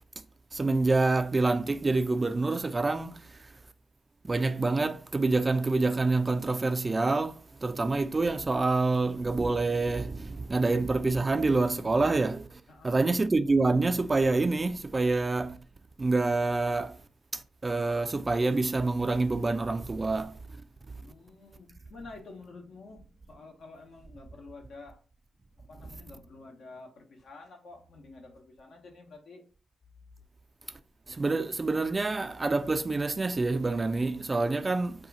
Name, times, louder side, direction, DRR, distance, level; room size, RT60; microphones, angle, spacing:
voice 1, 0.5-3.5 4.2-15.6 16.0-17.0 17.3-20.4 31.1-34.9, right 3 dB, 30° right, 0.3 m, -27 dB
voice 2, 12.7-13.1 21.0-25.0 25.5-29.4 34.6-34.8, left 3 dB, 65° left, 0.9 m, -49 dB
2.7 x 2.3 x 3.9 m
hypercardioid pair, 45°, 0 cm